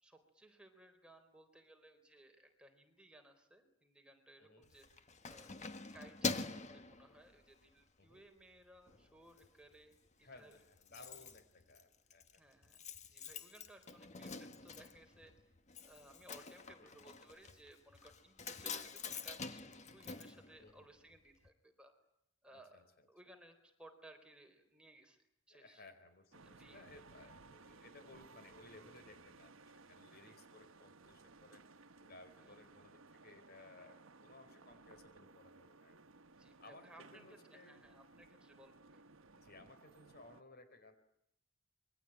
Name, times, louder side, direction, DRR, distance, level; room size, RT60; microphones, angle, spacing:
voice 1, 0.0-4.9 5.3-10.6 10.9-11.3 12.4-15.5 15.8-21.9 22.4-22.8 23.1-25.2 25.5-25.8 26.4-26.9 30.1-30.4 32.4-32.8 36.3-39.0, right 1 dB, 5° right, 4 dB, 4.2 m, -61 dB
voice 2, 4.4-4.7 8.0-8.2 10.2-12.4 16.8-17.0 20.6-20.9 22.5-22.8 25.5-31.7 32.0-36.0 36.6-36.8 37.1-37.8 39.4-41.0, left 2 dB, 50° left, 9 dB, 4.6 m, -60 dB
Keys jangling, 4.6-7.7 8.2-8.4 8.8-9.5 9.7-9.8 10.1-10.2 10.4-21.2 21.4-21.5, left 4 dB, 35° left, 1.5 m, -46 dB
sound 1, 26.3-40.4, right 3 dB, 85° right, 1.1 m, -60 dB
27.5 x 23.5 x 9.1 m, 0.79 s
head